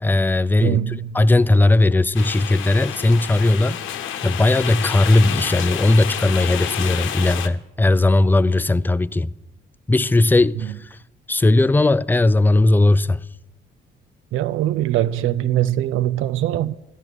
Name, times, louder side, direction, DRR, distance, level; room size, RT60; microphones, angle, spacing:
voice 1, 0.0-3.8 4.2-9.3 9.9-11.0 11.3-13.2, left 2 dB, 10° left, 0.4 m, -17 dB
voice 2, 0.6-1.2 14.3-16.7, right 12 dB, 90° right, 0.5 m, -22 dB
sound 1, 2.1-7.5, left 9 dB, 80° left, 0.9 m, -29 dB
14.0 x 10.5 x 6.4 m
cardioid pair, 90°, 20 cm